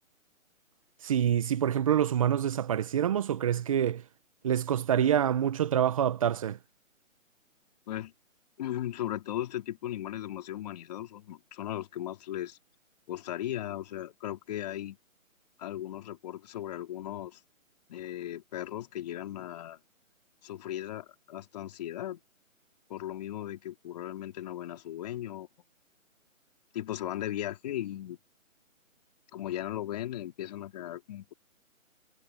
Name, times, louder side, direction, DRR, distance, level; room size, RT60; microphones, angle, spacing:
voice 1, 1.0-4.0 4.4-6.6, right 9 dB, 25° right, 1.2 m, -26 dB
voice 2, 8.6-12.6 13.1-15.0 15.6-17.4 17.9-19.8 20.4-22.2 22.9-25.5 26.7-28.2 29.3-31.3, left 12 dB, 30° left, 4.2 m, -37 dB
hypercardioid pair, 165°, 41 cm